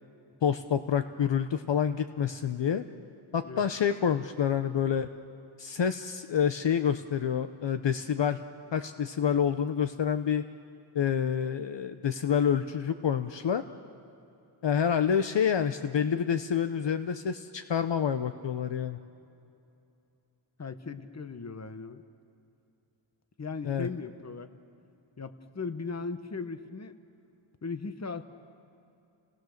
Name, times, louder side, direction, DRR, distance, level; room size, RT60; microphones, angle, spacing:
voice 1, 0.4-2.8 3.3-5.1 5.6-8.4 8.7-10.4 10.9-13.6 14.6-19.0 23.6-23.9, left 8 dB, 60° left, 9 dB, 0.8 m, -28 dB
voice 2, 20.6-22.0 23.4-24.5 25.2-27.0 27.6-28.2, left 4 dB, 35° left, 10 dB, 1.1 m, -38 dB
29.5 x 19.5 x 6.6 m, 2.7 s
wide cardioid pair, 75°, 49 cm